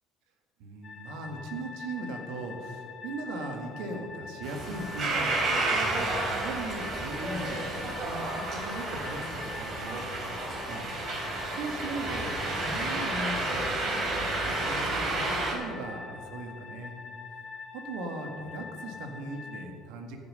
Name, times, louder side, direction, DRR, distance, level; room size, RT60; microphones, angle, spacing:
voice 1, 0.6-16.9 17.7-20.2, right 2 dB, 75° right, 3 dB, 1.7 m, -39 dB
sound 1, 0.8-19.6, left 5 dB, 50° left, 2.4 m, -44 dB
sound 2, 4.4-15.5, right 2 dB, 50° right, 3.5 m, -31 dB
15.0 x 5.7 x 6.5 m, 2.2 s
hypercardioid pair, 65°, 0 cm